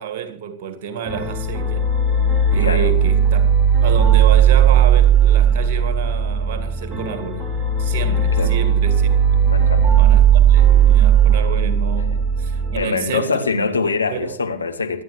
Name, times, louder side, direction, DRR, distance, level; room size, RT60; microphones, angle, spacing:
voice 1, 0.0-1.9 2.5-3.5 3.8-7.5 7.8-9.4 10.0-13.5 14.1-14.4, right 8 dB, 50° right, 1.9 m, -29 dB
sound 1, 1.1-12.8, right 7 dB, 15° right, 4.3 m, -16 dB
voice 2, 2.6-2.9 8.4-8.5 9.5-9.9 12.8-15.0, left 4 dB, 75° left, 1.2 m, -23 dB
25.5 x 9.7 x 3.1 m
figure-of-eight pair, 90°, 0 cm